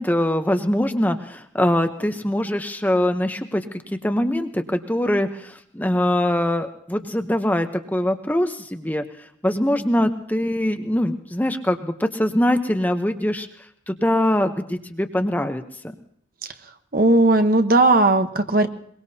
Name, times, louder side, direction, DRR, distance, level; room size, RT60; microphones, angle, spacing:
voice 1, 0.0-9.0 9.4-13.5 13.9-16.0, left 1 dB, 10° left, 6 dB, 0.8 m, -23 dB
voice 2, 16.9-18.7, right 2 dB, 50° right, 8 dB, 1.1 m, -16 dB
22.5 x 21.5 x 2.8 m, 0.69 s
head